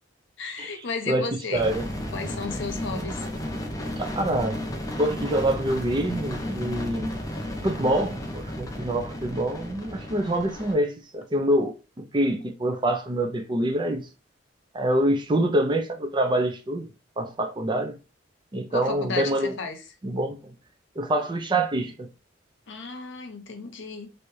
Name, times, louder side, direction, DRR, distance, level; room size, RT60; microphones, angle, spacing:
voice 1, 0.4-1.7 2.1-3.2 18.7-19.8 22.7-24.1, left 4 dB, 65° left, 0.7 m, -34 dB
voice 2, 1.1-1.8 4.0-4.6 4.9-7.1 7.6-14.1 14.7-16.9 17.2-17.9 18.5-19.5 20.0-20.4 21.0-22.1, right 1 dB, 25° right, 0.5 m, -26 dB
sound 1, 1.5-10.7, left 1 dB, 20° left, 0.7 m, -33 dB
3.3 x 2.6 x 3.1 m
head